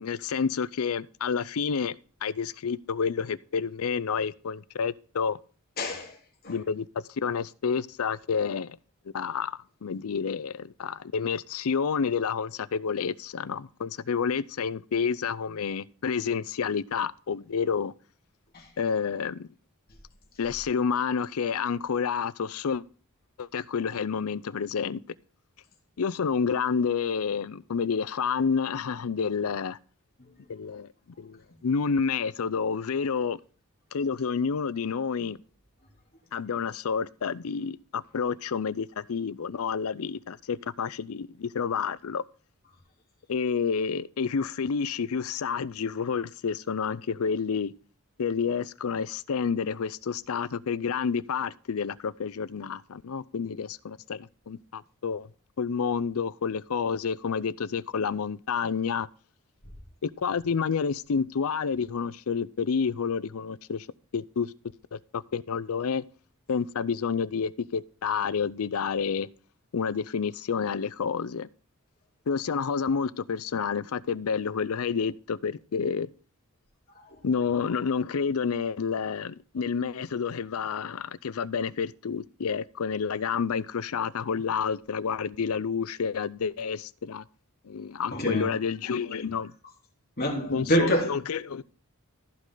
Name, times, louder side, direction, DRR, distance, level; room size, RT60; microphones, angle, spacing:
voice 1, 0.0-5.4 6.5-8.8 9.1-17.9 18.8-19.5 20.4-22.8 23.4-25.0 26.0-29.8 30.5-30.9 31.2-33.4 33.9-35.4 36.3-42.2 43.3-47.7 48.2-55.3 55.6-59.1 60.0-63.9 64.1-64.5 64.9-66.0 66.5-69.3 69.7-71.5 72.3-76.1 77.2-87.2 87.6-89.5 90.5-91.6, left 6 dB, 75° left, 0.5 m, -29 dB
voice 2, 5.8-6.2 6.4-6.6 18.5-18.7 30.2-30.6 77.1-77.2 88.1-88.5 90.2-91.1, equal, 45° left, 3.0 m, -27 dB
15.0 x 5.3 x 3.8 m
head